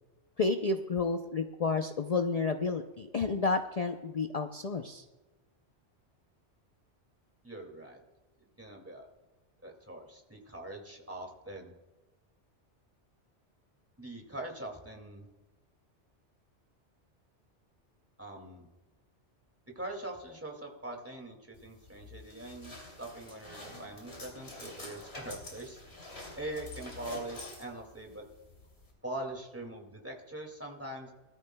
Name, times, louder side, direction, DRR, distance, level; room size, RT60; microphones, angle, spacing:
voice 1, 0.4-5.0, left 4 dB, 45° left, 6 dB, 0.5 m, -31 dB
voice 2, 7.4-8.0 8.6-9.1 9.6-11.7 14.0-15.3 18.2-18.7 19.8-25.8 26.4-28.2 29.0-31.1, right 1 dB, 10° right, 1 dB, 2.1 m, -42 dB
sound 1, 21.5-28.9, left 2 dB, 60° left, 3.1 m, -47 dB
20.0 x 13.0 x 2.2 m, 1.2 s
omnidirectional pair, 1.2 m